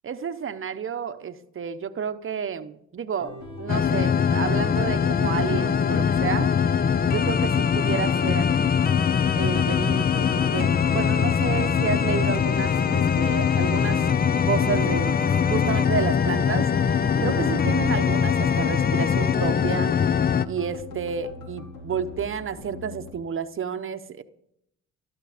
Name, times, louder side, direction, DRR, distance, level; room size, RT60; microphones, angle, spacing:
voice 1, 0.0-6.5 7.1-8.5 9.3-15.2 15.5-19.9 20.4-24.2, right 7 dB, 45° right, 10 dB, 0.9 m, -31 dB
sound 1, 3.2-23.1, left 3 dB, 80° left, 4.2 m, -40 dB
sound 2, 3.7-20.5, left 7 dB, 30° left, 0.5 m, -22 dB
14.0 x 12.5 x 5.0 m, 0.77 s
cardioid pair, 90°, 30 cm